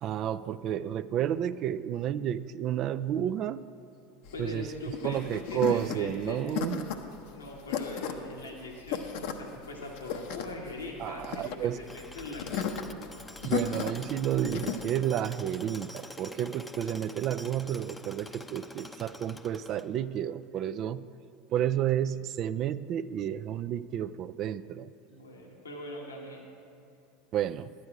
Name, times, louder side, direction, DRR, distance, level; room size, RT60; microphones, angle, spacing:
voice 1, 0.0-3.6 4.4-4.7 5.0-6.9 11.0-11.8 13.4-21.1 21.5-24.9 27.3-27.7, right 10 dB, 45° right, 14 dB, 0.3 m, -31 dB
voice 2, 4.3-5.2 5.5-6.5 7.3-12.9 25.1-26.4, left 2 dB, 85° left, -1 dB, 1.5 m, -41 dB
sound 1, 4.3-14.9, left 7 dB, 65° left, 0.8 m, -35 dB
Tools, 11.9-20.2, left 1 dB, 10° left, 0.6 m, -46 dB
11.5 x 9.5 x 4.8 m, 2.6 s
hypercardioid pair, 80°, 0 cm